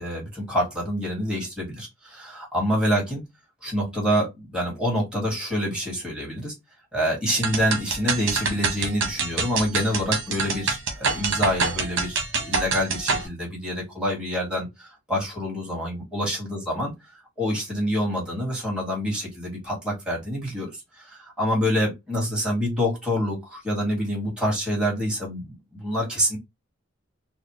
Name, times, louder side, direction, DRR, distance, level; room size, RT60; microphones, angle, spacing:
voice 1, 0.0-3.2 3.6-6.5 6.9-16.9 17.4-26.4, equal, 5° right, -5 dB, 1.9 m, -27 dB
sound 1, 7.3-13.3, right 4 dB, 65° right, 1.0 m, -26 dB
4.0 x 2.2 x 3.1 m, 0.20 s
head